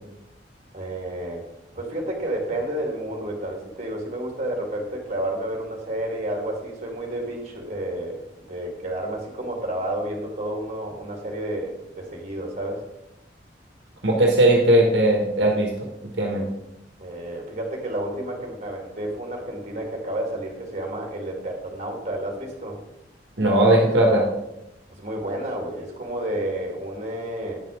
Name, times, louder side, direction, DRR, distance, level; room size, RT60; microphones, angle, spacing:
voice 1, 0.7-1.4 1.8-8.2 8.5-12.8 17.0-22.8 24.9-27.6, right 1 dB, 40° right, 0 dB, 2.2 m, -30 dB
voice 2, 14.0-15.9 16.2-16.5 23.4-24.3, right 1 dB, 65° right, 0 dB, 1.6 m, -18 dB
9.0 x 5.9 x 5.0 m, 0.89 s
head